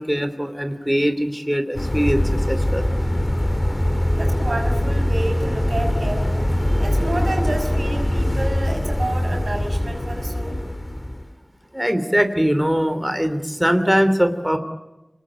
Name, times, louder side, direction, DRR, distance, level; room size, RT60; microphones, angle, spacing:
voice 1, 0.0-2.8 11.7-14.6, equal, 5° right, 8 dB, 2.9 m, -21 dB
sound 1, 1.8-11.3, left 1 dB, 30° left, 3.2 m, -22 dB
voice 2, 4.1-6.3 6.8-10.6, right 1 dB, 90° right, 3 dB, 6.1 m, -29 dB
28.5 x 20.5 x 8.8 m, 1.0 s
wide cardioid pair, 55°, 0 cm